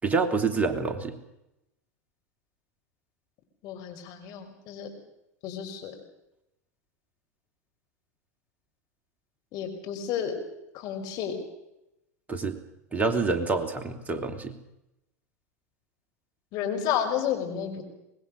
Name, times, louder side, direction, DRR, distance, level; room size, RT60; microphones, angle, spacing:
voice 1, 0.0-1.2 12.3-12.6 12.9-14.5, right 4 dB, 15° right, 5 dB, 3.2 m, -27 dB
voice 2, 3.6-4.9 5.4-5.9 9.5-10.3 10.7-11.3 16.5-17.8, left 9 dB, 50° left, 5 dB, 5.3 m, -31 dB
24.5 x 20.5 x 6.6 m, 0.89 s
hypercardioid pair, 95°, 9 cm